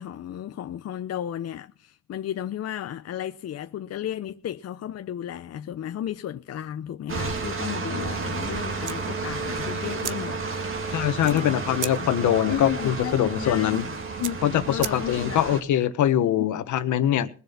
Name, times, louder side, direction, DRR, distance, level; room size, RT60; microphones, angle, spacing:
voice 1, 0.0-11.6 12.0-12.1 12.5-15.9 16.4-16.5, left 11 dB, 55° left, 0.7 m, -34 dB
sound 1, 7.1-15.6, right 4 dB, 45° right, 2.0 m, -32 dB
sound 2, 8.8-15.4, right 12 dB, 80° right, 0.9 m, -39 dB
voice 2, 10.9-13.8 14.4-17.3, left 11 dB, 80° left, 1.5 m, -23 dB
20.5 x 7.0 x 5.9 m
cardioid pair, 90°, 30 cm